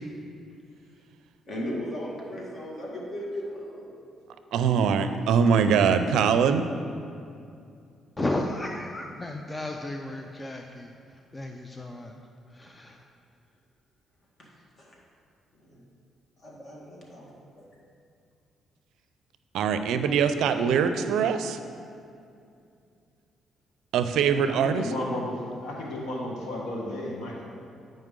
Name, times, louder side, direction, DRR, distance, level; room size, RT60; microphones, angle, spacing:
voice 1, 1.5-4.0 14.4-14.5 14.8-14.9 15.6-15.8 16.4-17.3 17.6-17.7, equal, 40° left, -3 dB, 1.9 m, -36 dB
voice 2, 4.5-6.6 19.5-21.6 23.9-24.8, right 6 dB, 80° right, 9 dB, 0.4 m, -22 dB
voice 3, 8.2-12.2 12.5-13.0, left 1 dB, 20° left, 3 dB, 0.5 m, -34 dB
voice 4, 24.3-27.4, left 1 dB, 80° left, -2 dB, 1.5 m, -33 dB
9.2 x 5.3 x 3.7 m, 2.4 s
cardioid pair, 90°, 0 cm